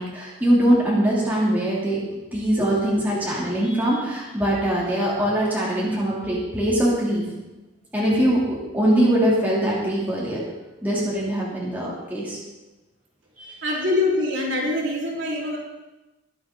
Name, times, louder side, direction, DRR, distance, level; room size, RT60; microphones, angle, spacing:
voice 1, 0.0-7.2 7.9-10.4 10.8-12.4 13.4-13.8, right 1 dB, 10° right, -6 dB, 3.0 m, -22 dB
voice 2, 13.6-15.6, left 2 dB, 70° right, -5 dB, 4.1 m, -24 dB
21.0 x 7.8 x 3.9 m, 1.1 s
head